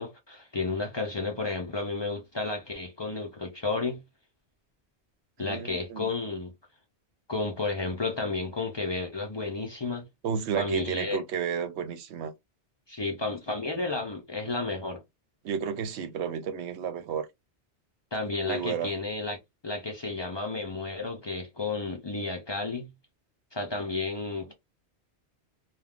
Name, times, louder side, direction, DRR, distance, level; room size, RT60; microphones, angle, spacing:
voice 1, 0.0-4.0 5.4-6.5 7.3-10.0 10.5-11.2 12.9-15.0 18.1-19.4 19.6-22.9 23.5-24.5, left 3 dB, 40° left, 0.4 m, -32 dB
voice 2, 5.4-6.1 10.2-12.3 15.4-17.3 18.4-18.9, right 7 dB, 75° right, 0.8 m, -32 dB
2.3 x 2.2 x 3.4 m
omnidirectional pair, 1.1 m